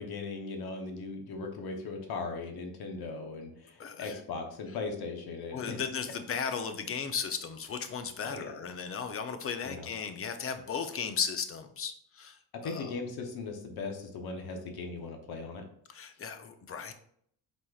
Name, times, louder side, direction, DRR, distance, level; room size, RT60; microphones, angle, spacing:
voice 1, 0.0-5.8 8.2-8.6 9.6-9.9 12.6-15.7, left 4 dB, 65° left, 3 dB, 0.9 m, -38 dB
voice 2, 3.8-4.2 5.5-12.4 12.6-12.9 15.9-16.9, left 6 dB, 35° left, 8 dB, 0.6 m, -36 dB
4.5 x 4.3 x 2.4 m, 0.66 s
cardioid pair, 100°, 39 cm